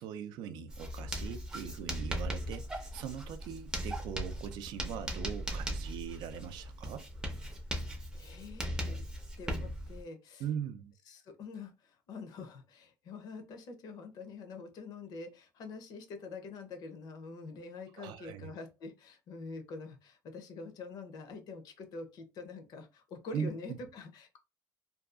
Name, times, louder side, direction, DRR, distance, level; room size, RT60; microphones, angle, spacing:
voice 1, 0.0-7.1 10.4-10.9 18.0-18.5 23.3-23.8, right 8 dB, 80° right, 0.4 m, -41 dB
Writing, 0.7-10.0, equal, 10° right, 0.5 m, -38 dB
voice 2, 8.2-9.0 9.4-10.5 11.1-24.4, left 3 dB, 60° left, 0.6 m, -45 dB
2.6 x 2.3 x 2.3 m
cardioid pair, 155°, 7 cm